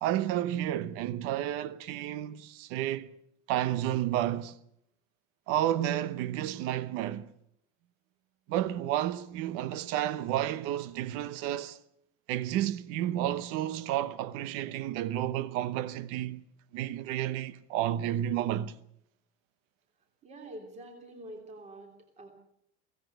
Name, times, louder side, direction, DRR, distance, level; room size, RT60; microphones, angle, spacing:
voice 1, 0.0-3.1 3.5-4.5 5.5-7.3 8.5-11.8 12.3-16.4 16.7-18.7, right 12 dB, 40° right, 0.9 m, -31 dB
voice 2, 20.2-21.9 22.2-22.3, right 1 dB, 20° right, 3.2 m, -46 dB
23.5 x 17.0 x 7.9 m
cardioid pair, 180°, 34 cm